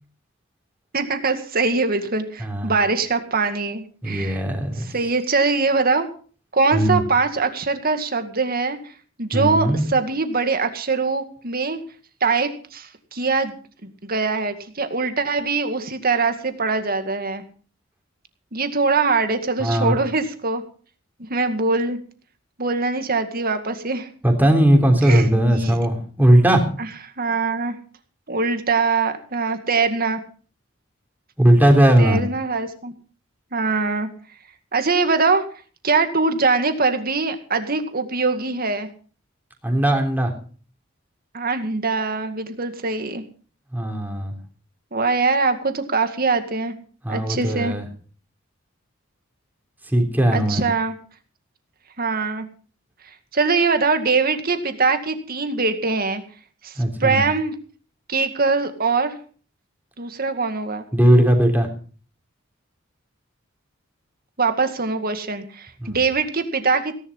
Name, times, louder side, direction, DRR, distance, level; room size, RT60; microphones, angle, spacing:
voice 1, 0.9-4.4 4.8-6.1 6.5-8.9 9.2-11.8 12.2-13.5 13.8-17.4 18.5-20.6 21.2-22.0 22.6-24.1 25.0-25.8 26.8-26.9 27.2-27.8 28.3-30.2 32.0-32.9 33.5-34.1 34.7-35.4 35.8-38.9 41.3-43.2 44.9-46.7 47.1-47.7 50.3-50.9 52.0-52.5 53.3-56.2 56.6-57.5 58.1-59.2 60.0-60.8 64.4-66.9, right 4 dB, 50° right, 8 dB, 2.1 m, -22 dB
voice 2, 2.4-2.8 4.0-4.9 6.7-7.0 9.3-9.8 19.6-20.0 24.2-26.6 31.4-32.2 39.6-40.3 43.7-44.4 47.0-47.8 49.9-50.6 56.8-57.2 60.9-61.7 65.8-66.0, right 1 dB, 10° right, 3 dB, 3.4 m, -18 dB
17.5 x 11.0 x 5.6 m, 0.41 s
head